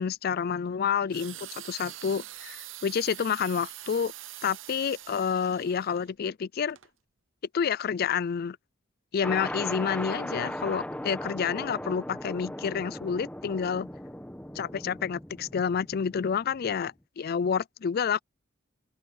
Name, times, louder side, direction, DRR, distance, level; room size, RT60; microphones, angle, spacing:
voice 1, 0.0-4.1 4.4-6.8 7.5-8.6 9.1-13.9 14.6-18.2, left 7 dB, 50° left, 0.4 m, -29 dB
sound 1, 1.1-6.1 6.7-6.9, right 14 dB, 75° right, 0.8 m, -44 dB
sound 2, 9.2-16.8, left 1 dB, 5° left, 1.6 m, -38 dB
open air
head